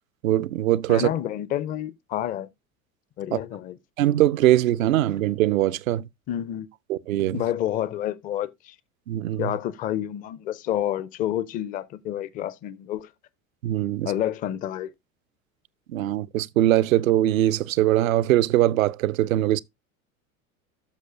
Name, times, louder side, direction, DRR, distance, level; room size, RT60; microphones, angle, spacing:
voice 1, 0.2-1.1 3.3-3.4 4.0-6.1 6.9-7.4 9.1-9.5 13.6-14.1 15.9-19.6, right 14 dB, 65° right, 0.5 m, -22 dB
voice 2, 0.9-2.5 3.2-3.8 6.3-6.7 7.3-8.8 9.4-13.1 14.0-14.9, left 11 dB, 20° left, 0.4 m, -29 dB
13.0 x 6.3 x 2.2 m
figure-of-eight pair, 75°, 44 cm